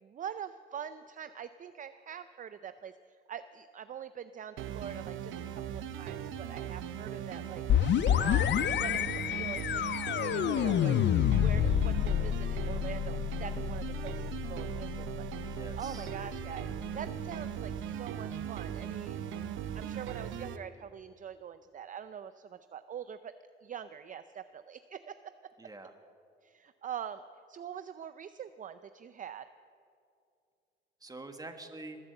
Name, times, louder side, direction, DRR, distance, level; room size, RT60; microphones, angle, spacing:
voice 1, 0.0-7.6 8.2-9.8 10.1-11.0 11.4-14.2 14.5-15.3 15.8-19.2 19.7-23.3 23.6-25.5 26.4-27.2 27.5-29.5, right 8 dB, 40° right, 12 dB, 0.5 m, -44 dB
sound 1, 4.6-20.6, right 9 dB, 90° right, 0.8 m, -39 dB
sound 2, 7.7-17.3, left 10 dB, 65° left, 0.6 m, -30 dB
voice 2, 15.4-16.1 25.6-25.9 31.0-32.0, right 2 dB, 20° right, 6 dB, 1.6 m, -46 dB
21.0 x 7.5 x 8.0 m, 2.5 s
cardioid pair, 90°, 20 cm